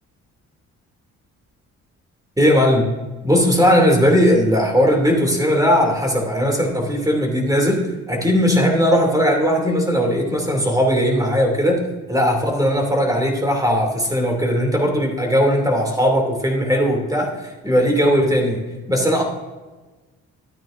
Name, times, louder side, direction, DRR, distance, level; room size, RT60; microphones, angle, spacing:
voice 1, 2.4-2.9 3.2-11.8 12.1-18.6 18.9-19.2, equal, 10° right, 1 dB, 2.7 m, -18 dB
13.5 x 8.9 x 2.6 m, 1.2 s
cardioid pair, 90°, 30 cm